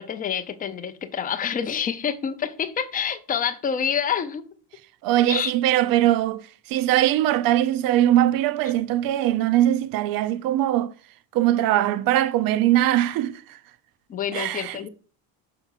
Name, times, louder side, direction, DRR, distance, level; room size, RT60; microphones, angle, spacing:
voice 1, 0.0-4.5 5.3-5.5 14.1-14.9, left 8 dB, 20° left, 0.4 m, -27 dB
voice 2, 5.0-6.4 6.7-10.9 11.3-13.6 14.3-14.9, right 13 dB, 50° right, 0.5 m, -21 dB
5.9 x 4.4 x 5.8 m
cardioid pair, 165°, 43 cm